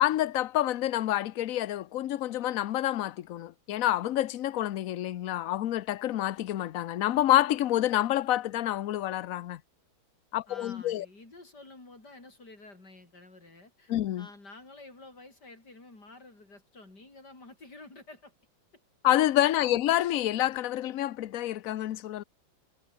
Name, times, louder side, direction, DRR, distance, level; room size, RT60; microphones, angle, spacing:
voice 1, 0.0-9.6 10.3-11.1 13.9-14.3 19.0-22.2, left 13 dB, 65° left, 0.8 m, -28 dB
voice 2, 10.5-18.3 19.4-19.7, left 2 dB, 50° left, 7.4 m, -50 dB
omnidirectional pair, 2.2 m